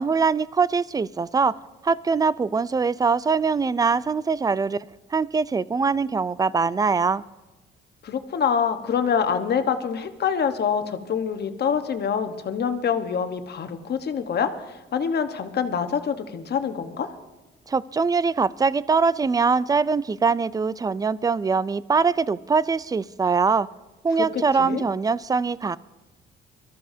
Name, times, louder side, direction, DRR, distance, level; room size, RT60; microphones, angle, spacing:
voice 1, 0.0-1.6 1.8-4.8 5.1-7.2 17.7-23.7 24.0-25.8, right 5 dB, 20° right, 19 dB, 0.4 m, -22 dB
voice 2, 8.0-17.1 24.3-24.8, left 7 dB, 55° left, 8 dB, 1.2 m, -26 dB
23.0 x 13.5 x 2.7 m, 1.1 s
cardioid pair, 90°, 20 cm